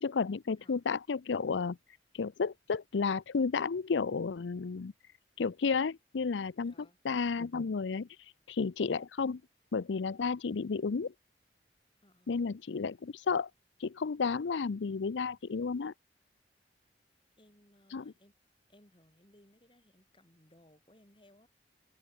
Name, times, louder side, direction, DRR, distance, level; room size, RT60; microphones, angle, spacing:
voice 1, 0.0-1.8 2.1-4.9 5.4-6.7 7.0-8.1 8.5-9.4 9.7-11.1 12.3-13.5 13.8-15.9 17.9-18.1, left 5 dB, 90° left, 0.5 m, -32 dB
voice 2, 6.6-7.0 12.0-12.3 17.4-18.3 18.7-21.5, left 1 dB, 30° left, 5.7 m, -63 dB
open air
head